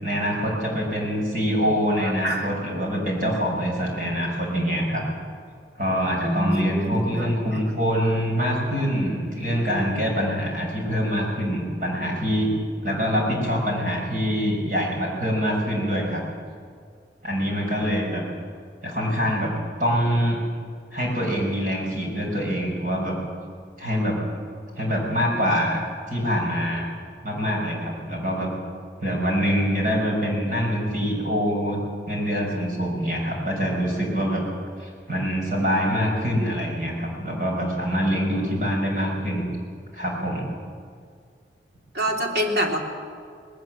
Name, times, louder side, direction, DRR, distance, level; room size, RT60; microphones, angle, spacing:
voice 1, 0.0-5.0 5.8-12.5 12.8-16.2 17.2-18.2 18.8-19.5 19.8-20.4 20.9-23.2 23.8-24.2 24.8-25.8 26.1-26.9 27.2-28.5 29.0-31.8 32.1-34.5 34.8-39.5 39.9-40.5, equal, 45° right, -1 dB, 6.0 m, -25 dB
voice 2, 2.0-2.5 6.2-7.3 7.5-7.6 12.9-13.0 41.9-42.8, equal, 65° right, 1 dB, 2.9 m, -26 dB
19.5 x 19.0 x 7.6 m, 2.2 s
head